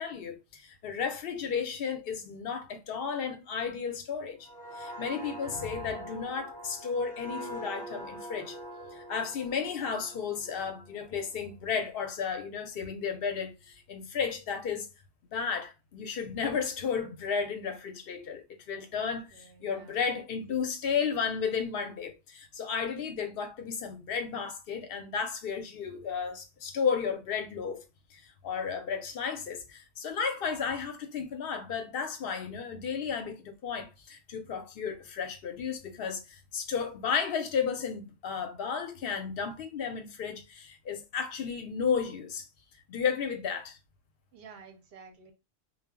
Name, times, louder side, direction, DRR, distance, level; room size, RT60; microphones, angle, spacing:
voice 1, 0.0-4.5 4.7-8.6 8.9-14.9 15.3-27.8 28.1-42.5 42.9-43.8, left 6 dB, 60° left, 0.7 m, -33 dB
sound 1, 4.4-11.9 12.3-12.6, right 1 dB, 15° right, 0.6 m, -44 dB
voice 2, 19.3-20.0 44.3-45.3, right 5 dB, 60° right, 0.7 m, -52 dB
2.1 x 2.0 x 3.5 m
omnidirectional pair, 1.3 m